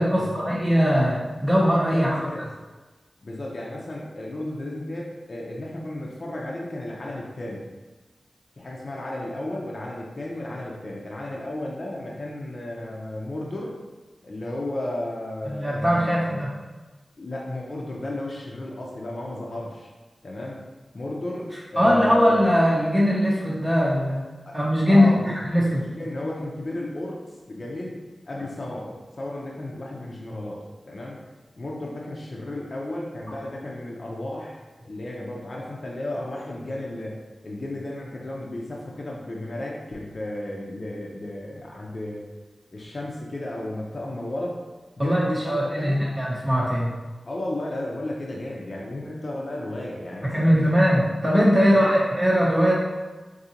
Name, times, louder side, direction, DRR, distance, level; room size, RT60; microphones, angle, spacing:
voice 1, 0.0-2.2 15.5-16.5 21.8-24.2 24.5-25.1 25.4-25.8 45.0-46.9 50.2-52.7, equal, 20° right, -6 dB, 0.7 m, -20 dB
voice 2, 1.9-2.5 3.2-7.7 8.6-13.8 14.2-16.5 17.2-19.9 20.2-20.6 20.9-22.4 24.5-24.6 24.9-25.4 25.7-27.2 27.5-28.0 28.3-31.2 31.6-37.2 37.4-42.3 42.7-44.6 45.0-46.1 47.3-50.7 51.7-51.9, left 1 dB, 55° left, -3 dB, 0.5 m, -33 dB
3.7 x 2.7 x 2.8 m, 1.2 s
wide cardioid pair, 65°, 0 cm